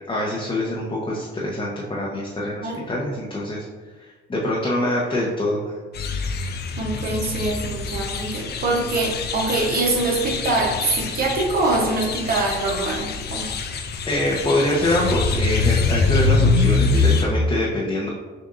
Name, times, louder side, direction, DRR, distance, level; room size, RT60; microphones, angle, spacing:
voice 1, 0.1-3.7 4.0-5.7 14.1-18.1, left 1 dB, 25° left, -5 dB, 0.9 m, -24 dB
sound 1, 5.9-17.3, left 4 dB, 55° left, 0.5 m, -24 dB
voice 2, 6.8-13.6, right 2 dB, 50° right, 0 dB, 1.0 m, -24 dB
6.4 x 2.6 x 2.6 m, 1.3 s
cardioid pair, 90°, 20 cm